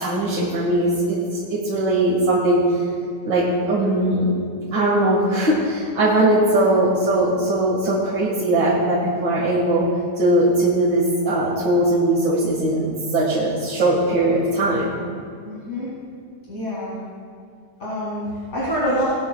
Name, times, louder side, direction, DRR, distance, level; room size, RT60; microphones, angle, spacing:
voice 1, 0.0-2.9 3.2-4.4 4.7-9.9 10.2-14.9, right 1 dB, 70° right, -6 dB, 2.5 m, -20 dB
voice 2, 15.4-15.9 16.5-17.0 17.8-19.1, equal, 40° left, -9 dB, 2.8 m, -26 dB
19.0 x 12.5 x 2.3 m, 2.3 s
omnidirectional pair, 2.0 m